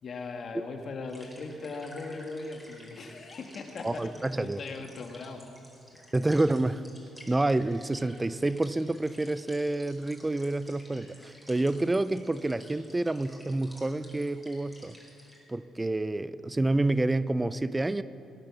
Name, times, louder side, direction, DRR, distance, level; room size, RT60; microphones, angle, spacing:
voice 1, 0.0-5.4, left 3 dB, 55° left, 4 dB, 1.7 m, -39 dB
sound 1, 1.1-15.4, equal, ahead, 4.3 m, -53 dB
voice 2, 3.8-4.6 6.1-6.8 7.3-15.0 15.5-18.0, right 2 dB, 15° right, 15 dB, 0.5 m, -28 dB
19.0 x 8.8 x 7.1 m, 2.8 s
cardioid pair, 90°, 0 cm